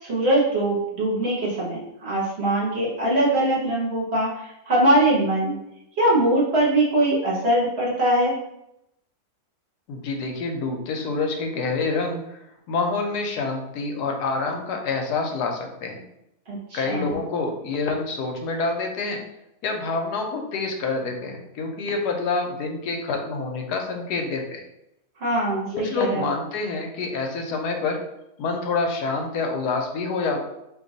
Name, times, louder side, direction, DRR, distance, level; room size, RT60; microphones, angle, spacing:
voice 1, 0.0-5.5 6.0-8.3 16.5-17.1 25.2-26.3, right 1 dB, 50° right, -6 dB, 1.0 m, -22 dB
voice 2, 9.9-12.4 12.7-16.0 16.7-19.2 19.6-24.6 25.7-28.0 28.4-30.4, left 3 dB, 80° left, 3 dB, 1.1 m, -27 dB
2.8 x 2.2 x 3.8 m, 0.84 s
omnidirectional pair, 1.7 m